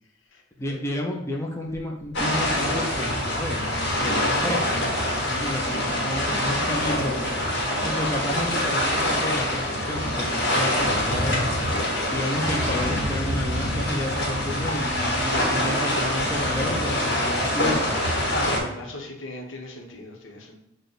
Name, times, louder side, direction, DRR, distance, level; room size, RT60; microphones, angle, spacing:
voice 1, 0.6-4.9 5.3-7.3 7.8-11.5 12.1-18.0, left 1 dB, 15° left, 0 dB, 0.5 m, -31 dB
sound 1, 2.1-18.6, left 1 dB, 60° left, 1.3 m, -25 dB
voice 2, 18.3-20.6, left 2 dB, 75° left, 1 dB, 0.9 m, -35 dB
6.3 x 2.1 x 3.9 m, 0.81 s
head